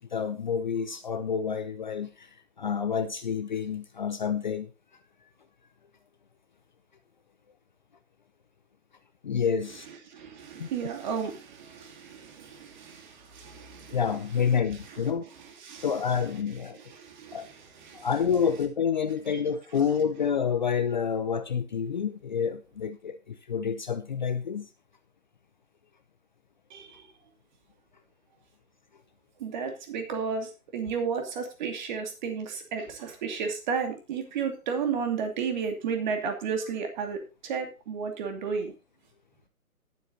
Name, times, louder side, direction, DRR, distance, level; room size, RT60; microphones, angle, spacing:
voice 1, 0.1-4.7 9.2-9.9 10.6-10.7 13.9-15.3 15.8-16.8 17.3-17.5 17.9-24.7, left 7 dB, 35° left, 0.7 m, -28 dB
voice 2, 10.1-14.0 15.6-15.9 16.8-17.5 17.8-18.1 26.7-27.1 29.4-38.7, right 6 dB, 30° right, 2.6 m, -33 dB
19.0 x 8.2 x 2.7 m
figure-of-eight pair, 145°, 44 cm